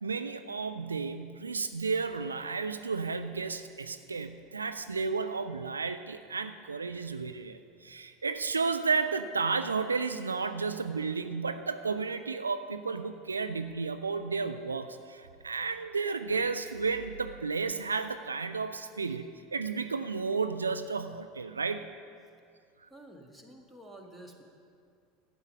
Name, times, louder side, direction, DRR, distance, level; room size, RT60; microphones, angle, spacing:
voice 1, 0.0-21.9 22.8-22.9, right 4 dB, 80° right, 10 dB, 0.3 m, -32 dB
voice 2, 22.9-24.4, right 1 dB, 10° right, 2 dB, 1.5 m, -50 dB
11.5 x 8.9 x 5.4 m, 2.3 s
figure-of-eight pair, 75°, 0 cm